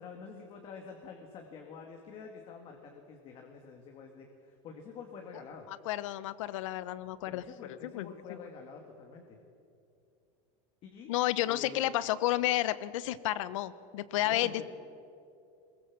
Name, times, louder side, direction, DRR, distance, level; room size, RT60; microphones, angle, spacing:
voice 1, 0.0-5.7 7.2-9.4 10.8-11.1 11.5-11.8 14.2-14.6, left 5 dB, 35° left, 3 dB, 2.0 m, -48 dB
voice 2, 5.9-7.4 7.9-8.1 11.1-14.6, left 14 dB, 80° left, 17 dB, 1.0 m, -31 dB
21.5 x 20.0 x 7.3 m, 2.6 s
supercardioid pair, 170°, 16 cm